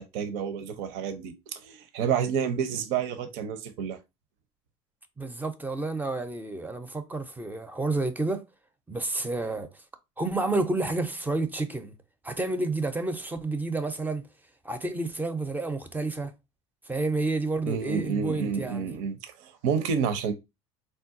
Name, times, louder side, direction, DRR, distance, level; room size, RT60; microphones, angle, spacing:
voice 1, 0.0-4.0 17.6-20.3, right 7 dB, 70° right, 0.6 m, -29 dB
voice 2, 5.2-8.4 8.9-9.7 10.2-11.9 12.2-14.2 14.6-16.3 16.9-18.9, right 2 dB, 10° right, 0.5 m, -30 dB
3.7 x 2.2 x 2.5 m
hypercardioid pair, 85°, 16 cm